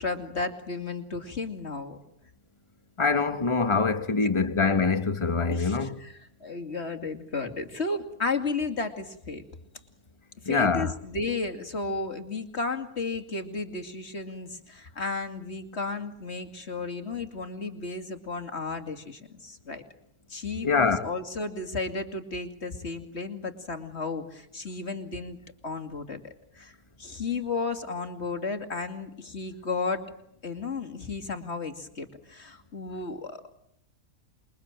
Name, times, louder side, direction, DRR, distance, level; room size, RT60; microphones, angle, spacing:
voice 1, 0.0-2.0 4.2-4.3 5.5-9.4 10.4-19.8 20.3-25.4 25.6-26.7 27.0-30.0 30.4-33.5, left 3 dB, 45° left, 2.8 m, -33 dB
voice 2, 3.0-6.0 10.5-10.9 20.6-21.1, left 4 dB, 20° left, 1.3 m, -24 dB
28.0 x 23.0 x 9.0 m
omnidirectional pair, 1.6 m